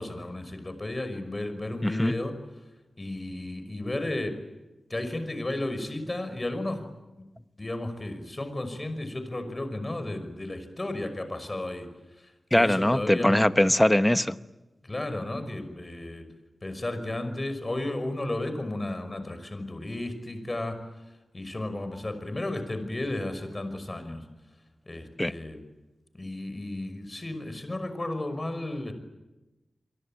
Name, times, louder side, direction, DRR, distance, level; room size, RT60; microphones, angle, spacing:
voice 1, 0.0-2.3 3.0-4.3 4.9-6.9 7.6-11.9 12.2-13.3 14.8-16.2 16.6-20.8 21.3-24.2 24.9-25.6 26.1-28.9, left 1 dB, 30° left, 5.6 m, -33 dB
voice 2, 1.8-2.1 12.5-14.4 25.2-25.3, left 1 dB, 15° left, 1.0 m, -21 dB
28.5 x 23.0 x 9.0 m
wide cardioid pair, 65°, 0 cm